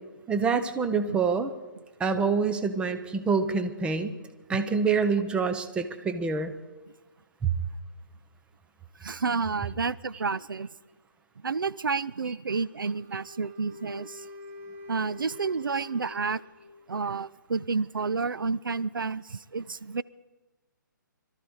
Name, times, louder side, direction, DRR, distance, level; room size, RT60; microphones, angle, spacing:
voice 1, 0.3-1.5 2.0-4.2 4.5-6.5 7.4-7.5, right 5 dB, 10° right, 9 dB, 0.8 m, -26 dB
voice 2, 9.0-10.7 11.4-14.2 14.9-16.4 16.9-20.0, right 4 dB, 80° right, 18 dB, 0.5 m, -30 dB
Wind instrument woodwind instrument, 12.5-16.9, left 2 dB, 35° right, 2.8 m, -46 dB
22.5 x 13.0 x 4.7 m, 1.2 s
figure-of-eight pair, 135°, 11 cm